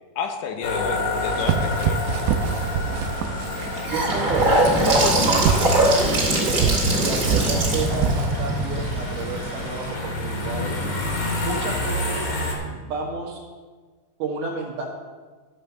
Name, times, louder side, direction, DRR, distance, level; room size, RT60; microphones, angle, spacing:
voice 1, 0.2-2.2 7.0-7.2, left 5 dB, 75° left, 5 dB, 3.0 m, -31 dB
sound 1, 0.6-12.5, left 2 dB, 45° left, 2.2 m, -29 dB
sound 2, 1.2-10.0, right 6 dB, 85° right, 2.8 m, -27 dB
Gurgling / Sink (filling or washing) / Bathtub (filling or washing), 3.5-9.6, right 1 dB, 30° right, 2.1 m, -22 dB
voice 2, 3.9-6.6 7.0-10.8 11.4-12.3 12.6-13.4 14.2-14.9, right 4 dB, 65° right, 0 dB, 2.8 m, -31 dB
13.5 x 5.5 x 6.8 m, 1.4 s
omnidirectional pair, 5.3 m